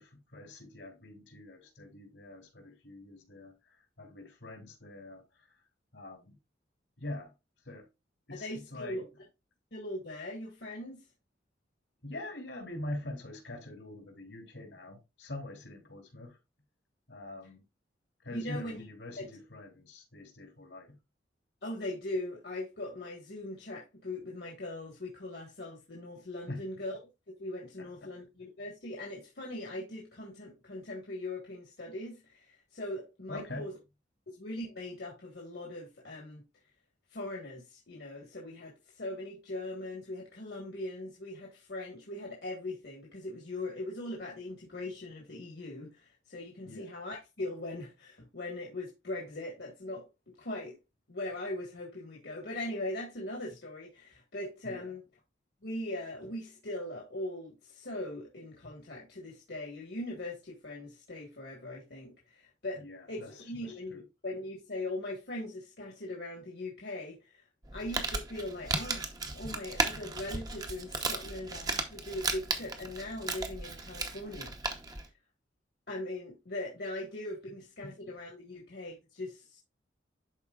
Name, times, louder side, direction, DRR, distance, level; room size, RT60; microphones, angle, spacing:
voice 1, 0.0-5.5 5.9-6.4 7.0-7.3 7.6-7.9 8.3-9.0 12.0-16.4 17.1-17.6 18.2-21.0 26.5-26.6 27.8-28.1 33.3-33.7 46.7-46.9 54.6-54.9 62.8-64.0 77.8-77.9, left 1 dB, 80° left, 2.8 m, -44 dB
voice 2, 8.3-9.0 9.7-11.0 18.3-18.8 19.2-19.3 21.6-26.9 27.3-33.7 34.3-36.4 37.1-50.0 50.4-50.8 51.1-55.0 55.6-62.8 63.1-67.3 67.7-74.5 75.9-79.6, left 1 dB, 60° left, 1.6 m, -40 dB
Crumpling crinkling, 67.6-75.1, right 3 dB, 20° right, 0.8 m, -35 dB
11.5 x 4.4 x 2.4 m
head